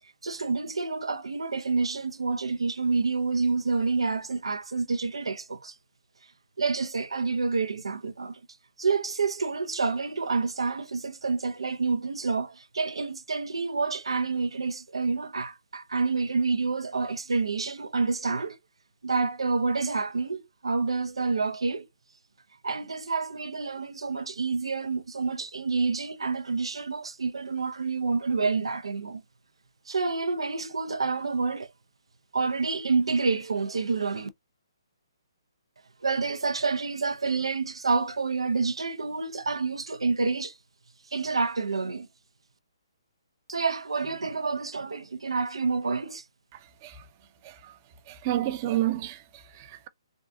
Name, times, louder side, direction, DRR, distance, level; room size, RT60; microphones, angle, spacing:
voice 1, 0.2-5.7 6.6-8.4 8.8-18.6 19.0-21.9 22.6-29.2 29.9-31.7 32.3-34.3 36.0-40.6 41.1-42.1 43.5-46.2, right 4 dB, 90° right, 0.6 m, -28 dB
voice 2, 46.5-47.0 47.4-47.8 48.1-49.9, right 14 dB, 30° right, 0.6 m, -31 dB
3.5 x 2.4 x 2.6 m
hypercardioid pair, 150°, 3 cm